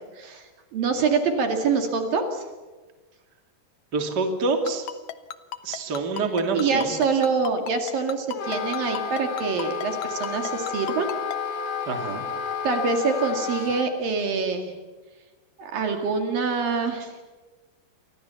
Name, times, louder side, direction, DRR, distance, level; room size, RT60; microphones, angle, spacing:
voice 1, 0.2-2.4 6.5-11.1 12.6-14.7 15.6-17.2, right 5 dB, 60° right, 5 dB, 3.8 m, -25 dB
voice 2, 3.9-4.9 5.6-7.0 11.9-12.3, right 3 dB, 25° right, 4 dB, 2.9 m, -26 dB
Ringtone, 4.7-11.4, left 11 dB, 85° left, 1.5 m, -34 dB
Wind instrument woodwind instrument, 8.3-13.9, left 6 dB, 50° left, 1.4 m, -31 dB
29.0 x 24.5 x 7.1 m, 1.3 s
omnidirectional pair, 4.8 m